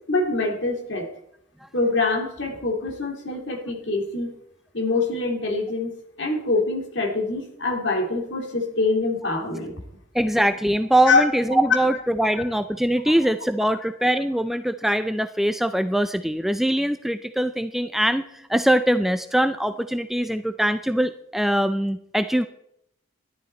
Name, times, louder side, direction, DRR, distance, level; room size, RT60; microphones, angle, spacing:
voice 1, 0.1-1.1 1.7-4.3 4.7-9.7 11.1-11.3, left 3 dB, 60° left, 2 dB, 2.4 m, -24 dB
voice 2, 10.1-22.5, right 1 dB, ahead, 9 dB, 0.3 m, -22 dB
11.5 x 11.0 x 4.3 m, 0.74 s
head